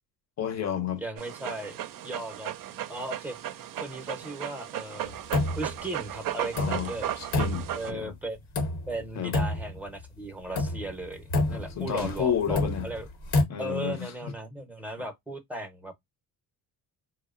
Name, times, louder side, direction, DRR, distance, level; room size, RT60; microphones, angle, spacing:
voice 1, 0.4-1.0 6.5-6.9 7.2-8.1 9.2-9.4 11.5-12.9 13.5-14.1, left 9 dB, 45° left, 0.7 m, -31 dB
voice 2, 1.0-1.8 2.0-2.5 2.9-3.4 3.8-5.2 5.5-7.1 7.7-8.4 8.9-13.0 13.6-16.0, right 2 dB, 5° right, 0.6 m, -37 dB
Dog, 1.2-7.9, right 12 dB, 60° right, 0.5 m, -36 dB
sound 1, 5.1-5.8 6.1-6.2 6.6-8.0 8.5-9.1 9.3-10.1 10.5-13.4, left 2 dB, 75° left, 1.0 m, -28 dB
2.7 x 2.1 x 2.3 m
cardioid pair, 115°, 39 cm